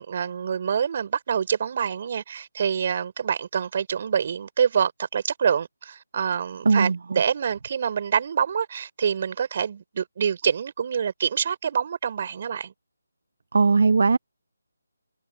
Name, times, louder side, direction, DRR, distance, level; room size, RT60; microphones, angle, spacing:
voice 1, 0.0-12.7, right 7 dB, 40° right, 6.0 m, -26 dB
voice 2, 13.5-14.2, right 4 dB, 60° right, 0.6 m, -18 dB
figure-of-eight pair, 160°, 0 cm